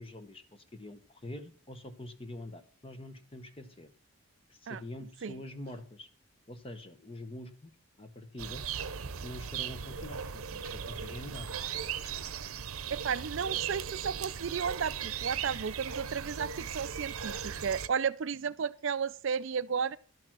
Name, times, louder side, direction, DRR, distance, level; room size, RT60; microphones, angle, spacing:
voice 1, 0.0-3.9 4.5-6.1 6.5-7.7 8.0-8.6 9.2-11.5, left 1 dB, 25° left, 0.9 m, -45 dB
sound 1, 8.4-17.9, right 7 dB, 75° right, 0.8 m, -38 dB
voice 2, 12.9-20.0, right 6 dB, 55° right, 0.4 m, -33 dB
12.0 x 6.8 x 6.0 m
head